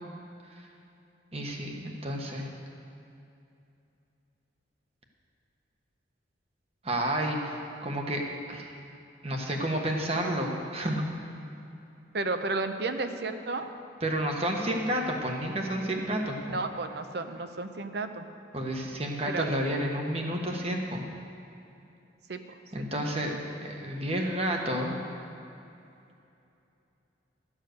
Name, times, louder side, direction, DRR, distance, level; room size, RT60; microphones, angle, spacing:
voice 1, 1.3-2.5 6.8-8.2 8.5-8.7 9.2-11.0 14.0-16.6 18.5-21.0 22.7-25.0, right 1 dB, 30° right, 1 dB, 1.2 m, -30 dB
voice 2, 12.1-13.7 16.5-18.3 19.2-19.5 22.3-22.4, right 3 dB, 60° right, 8 dB, 0.7 m, -32 dB
13.0 x 7.4 x 6.5 m, 2.7 s
head